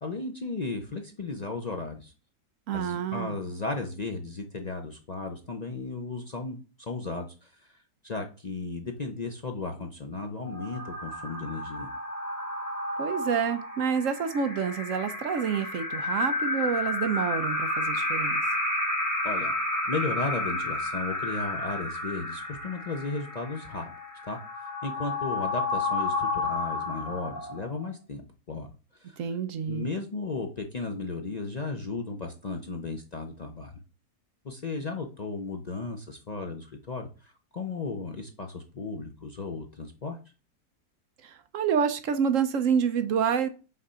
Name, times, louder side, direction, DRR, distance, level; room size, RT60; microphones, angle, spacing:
voice 1, 0.0-2.1 2.7-7.8 8.0-11.9 19.2-19.5 19.9-23.9 24.3-24.4 24.8-28.7 29.0-29.2 29.7-33.7 34.4-40.2, left 3 dB, 60° left, 3 dB, 0.4 m, -35 dB
voice 2, 2.7-3.3 13.0-18.4 29.2-29.9 41.2-43.5, right 7 dB, 60° right, 10 dB, 0.9 m, -28 dB
sound 1, 10.4-27.8, left 2 dB, 10° left, 2.0 m, -31 dB
5.8 x 3.7 x 5.4 m, 0.34 s
omnidirectional pair, 1.7 m